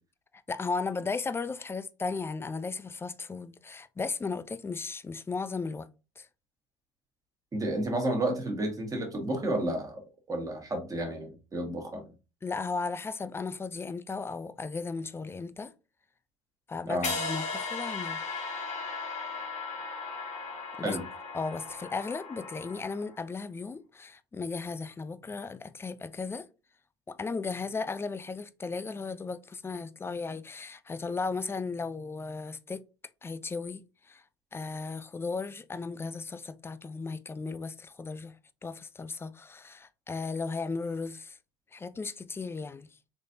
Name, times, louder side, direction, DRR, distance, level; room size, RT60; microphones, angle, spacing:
voice 1, 0.5-5.9 6.2-6.3 12.4-15.7 16.7-18.2 20.8-21.0 21.3-26.5 27.1-32.8 33.2-34.2 34.5-38.4 38.6-41.4 41.7-42.9, left 4 dB, 15° left, 0.4 m, -35 dB
voice 2, 7.5-12.0 16.9-17.1 20.8-21.0, right 1 dB, 20° right, 1.6 m, -31 dB
sound 1, 17.0-23.2, left 4 dB, 50° left, 1.6 m, -37 dB
4.1 x 3.1 x 2.7 m
hypercardioid pair, 80°, 16 cm